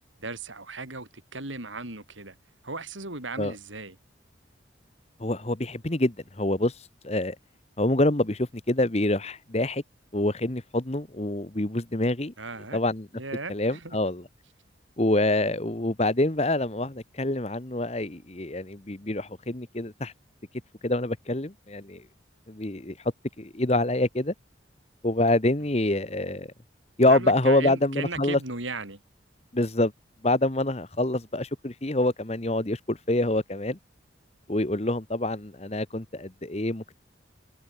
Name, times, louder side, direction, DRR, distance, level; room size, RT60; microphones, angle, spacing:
voice 1, 0.2-2.3 2.6-4.0 12.4-12.8 13.1-14.0 27.1-29.0, right 3 dB, 85° right, 6.3 m, -36 dB
voice 2, 5.2-6.7 7.0-7.3 7.8-9.8 10.1-12.3 12.7-13.1 13.5-14.2 15.0-20.1 20.8-22.0 22.5-23.0 23.4-24.3 25.0-26.5 27.0-28.4 29.5-29.9 30.2-33.8 34.5-37.0, left 1 dB, 35° left, 1.3 m, -26 dB
head